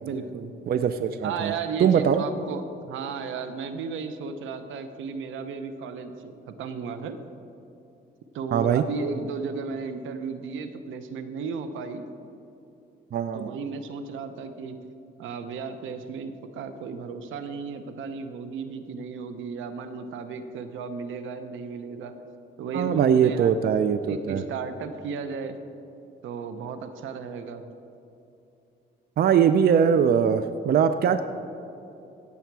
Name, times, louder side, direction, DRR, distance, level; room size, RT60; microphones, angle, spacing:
voice 1, 0.0-0.6 1.2-7.2 8.3-12.1 13.3-14.8 15.2-22.2 22.6-23.6 24.0-25.6 26.2-27.7, right 5 dB, 80° right, 9 dB, 0.8 m, -34 dB
voice 2, 0.7-1.5 1.8-2.2 8.5-8.8 13.1-13.6 22.7-24.4 29.2-31.2, right 8 dB, 50° right, 10 dB, 0.5 m, -21 dB
16.5 x 7.1 x 4.7 m, 2.8 s
cardioid pair, 90°, 20 cm